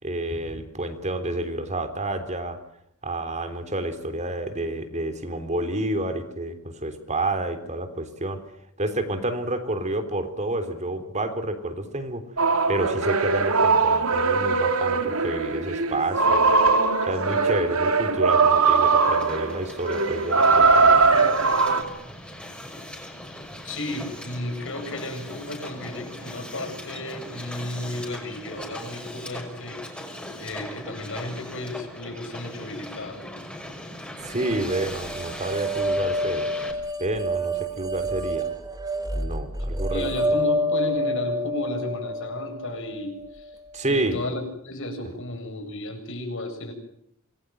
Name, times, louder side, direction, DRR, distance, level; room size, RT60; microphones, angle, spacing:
voice 1, 0.0-2.6 3.0-8.4 8.8-12.2 12.7-16.5 17.0-21.1 34.2-36.5 37.0-38.5 39.1-40.1 43.7-44.2, right 1 dB, 35° right, 9 dB, 3.5 m, -29 dB
sound 1, 12.4-21.8, right 4 dB, 80° right, 3.0 m, -20 dB
Hiss, 18.8-36.7, left 1 dB, 5° left, 5.9 m, -39 dB
voice 2, 23.6-33.2 39.9-43.6 43.8-46.7, left 1 dB, 65° left, 5 dB, 7.7 m, -33 dB
sound 2, 34.4-43.5, equal, 20° right, 3.0 m, -28 dB
26.5 x 21.5 x 9.2 m, 0.74 s
head